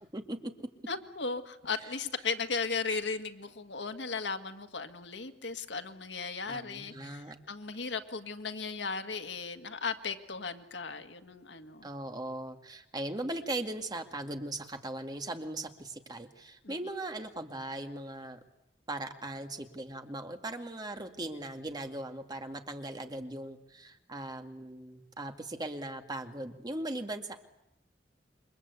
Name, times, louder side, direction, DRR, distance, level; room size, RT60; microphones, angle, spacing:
voice 1, 0.1-0.5 1.8-1.9 6.5-7.4 11.8-18.4 18.9-27.4, right 1 dB, 25° right, 5 dB, 2.1 m, -39 dB
voice 2, 0.9-11.9 16.6-16.8, left 4 dB, 85° left, 7 dB, 1.8 m, -36 dB
29.0 x 24.5 x 8.4 m, 0.87 s
head